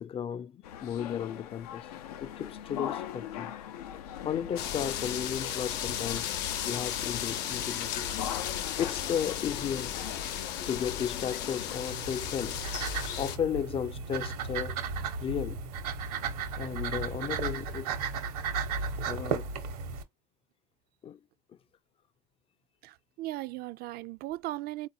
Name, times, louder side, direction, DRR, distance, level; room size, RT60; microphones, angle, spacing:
voice 1, 0.0-1.9 2.2-3.5 4.2-8.1 8.8-10.0 10.6-12.6 13.1-14.8 15.2-15.7 16.6-18.1 19.1-19.5 21.0-21.2, left 8 dB, 30° left, 0.4 m, -34 dB
sound 1, 0.6-11.8, left 10 dB, 90° left, 0.5 m, -41 dB
sound 2, 4.6-13.4, left 10 dB, 65° left, 0.8 m, -35 dB
sound 3, 11.6-20.0, right 5 dB, 85° right, 1.0 m, -35 dB
voice 2, 22.8-24.9, right 16 dB, 55° right, 0.4 m, -37 dB
3.8 x 2.5 x 2.7 m
hypercardioid pair, 80°, 19 cm